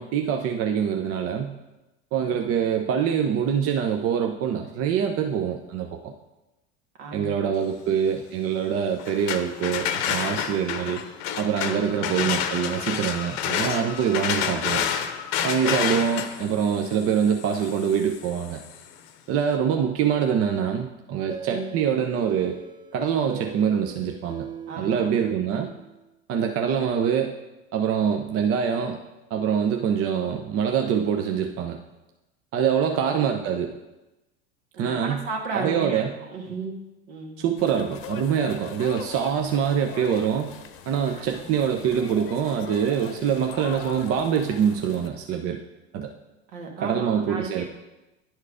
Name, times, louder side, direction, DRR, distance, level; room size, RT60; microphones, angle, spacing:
voice 1, 0.0-1.6 2.1-6.1 7.1-11.0 11.4-14.8 15.4-18.6 19.3-22.6 22.9-24.5 24.8-25.7 26.3-27.3 27.7-29.0 29.3-31.8 32.5-33.7 34.8-35.2 35.5-36.1 37.4-40.5 40.9-45.6 45.9-46.1 46.8-47.7, right 8 dB, 45° right, 4 dB, 0.7 m, -24 dB
voice 2, 2.1-2.6 7.0-7.4 15.8-16.0 19.5-19.8 21.5-21.7 24.7-25.2 32.8-33.1 34.8-36.8 37.1-37.4 41.1-41.4 46.5-47.7, right 4 dB, 70° right, 1 dB, 1.9 m, -35 dB
sound 1, 9.0-18.8, left 9 dB, 65° left, 0.9 m, -29 dB
sound 2, 21.3-26.0, right 6 dB, 15° right, 0.4 m, -41 dB
sound 3, 37.6-45.1, left 8 dB, 40° left, 0.9 m, -41 dB
10.5 x 4.6 x 4.9 m, 1.0 s
hypercardioid pair, 90°, 33 cm